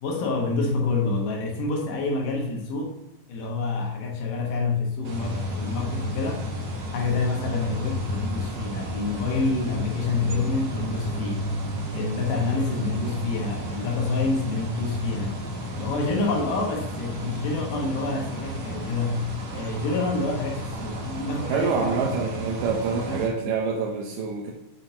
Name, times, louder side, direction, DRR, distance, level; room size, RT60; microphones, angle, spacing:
voice 1, 0.0-3.0 3.3-6.5 6.9-11.6 11.9-15.4 15.7-19.3 19.5-22.5 22.9-23.5, left 3 dB, 80° left, 0 dB, 2.8 m, -28 dB
sound 1, 5.0-23.3, equal, 60° right, 2.3 m, -33 dB
voice 2, 21.5-24.5, right 5 dB, 90° right, 0 dB, 2.4 m, -26 dB
6.9 x 5.9 x 2.7 m, 0.97 s
omnidirectional pair, 3.8 m